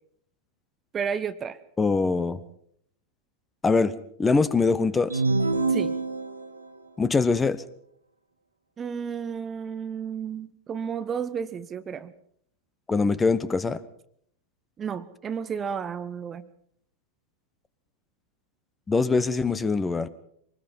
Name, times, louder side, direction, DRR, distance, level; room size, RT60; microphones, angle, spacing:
voice 1, 0.9-1.6 5.7-6.0 8.8-12.1 14.8-16.5, right 7 dB, 25° right, 14 dB, 0.9 m, -32 dB
voice 2, 1.8-2.4 3.6-3.9 4.2-5.1 7.0-7.6 12.9-13.8 18.9-20.1, left 4 dB, 15° left, 16 dB, 1.1 m, -23 dB
sound 1, 5.1-6.7, right 3 dB, 80° right, 1.5 m, -26 dB
24.5 x 20.0 x 5.4 m, 0.67 s
figure-of-eight pair, 90°, 0 cm